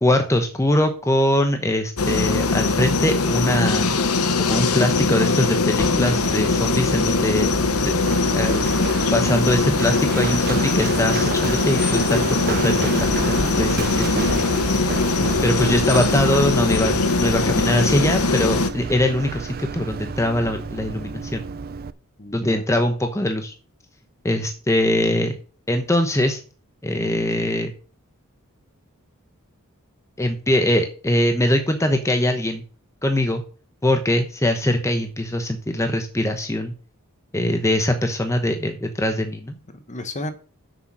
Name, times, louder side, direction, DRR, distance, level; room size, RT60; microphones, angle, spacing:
voice 1, 0.0-3.9 4.4-7.5 7.9-8.0 8.3-8.7 9.1-14.1 15.4-21.4 22.3-23.5 24.2-25.3 25.7-26.4 26.8-27.7 30.2-32.6 33.0-33.4 33.8-36.7 37.3-39.6, left 1 dB, 15° left, 0.9 m, -22 dB
sound 1, 2.0-18.7, left 3 dB, 80° left, 1.0 m, -21 dB
voice 2, 4.4-4.7 22.2-22.8 39.7-40.3, left 1 dB, 35° left, 1.2 m, -36 dB
Run, 5.8-21.9, right 5 dB, 45° right, 0.5 m, -31 dB
7.5 x 6.8 x 6.1 m
head